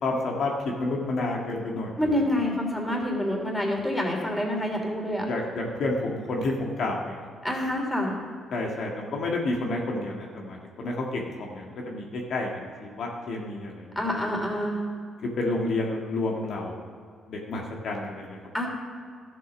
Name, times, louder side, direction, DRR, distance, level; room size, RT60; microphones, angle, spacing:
voice 1, 0.0-2.2 5.3-7.3 8.5-11.2 11.5-13.9 15.2-16.8 17.3-18.4, left 2 dB, 65° left, -1 dB, 1.7 m, -30 dB
voice 2, 2.0-5.2 7.4-8.1 13.9-14.8 18.5-18.7, left 1 dB, 10° left, 0 dB, 3.1 m, -27 dB
12.5 x 7.7 x 6.2 m, 2.1 s
cardioid pair, 90°, 0 cm